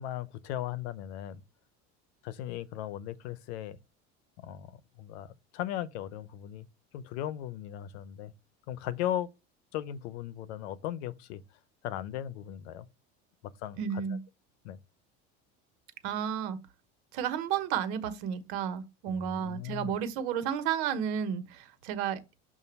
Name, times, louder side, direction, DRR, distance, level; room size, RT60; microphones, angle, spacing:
voice 1, 0.0-1.4 2.2-3.8 4.4-6.7 6.9-8.3 8.7-9.3 9.7-11.4 11.8-12.9 13.6-14.0 14.6-14.8 19.1-20.0, left 12 dB, 90° left, 0.8 m, -37 dB
voice 2, 13.8-14.2 16.0-16.6 17.1-22.2, right 8 dB, 80° right, 1.2 m, -32 dB
6.8 x 2.7 x 5.3 m
supercardioid pair, 110°, 33 cm